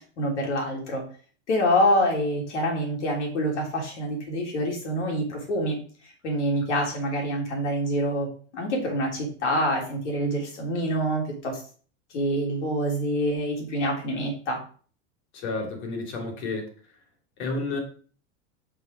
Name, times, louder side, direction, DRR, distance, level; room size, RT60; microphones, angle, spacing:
voice 1, 0.2-1.0 1.5-5.8 6.0-11.6 12.1-14.6, equal, 90° left, 0 dB, 3.4 m, -26 dB
voice 2, 15.3-16.7 17.4-17.8, left 3 dB, 70° left, 3 dB, 3.1 m, -31 dB
6.0 x 5.4 x 5.1 m, 0.41 s
supercardioid pair, 115°, 34 cm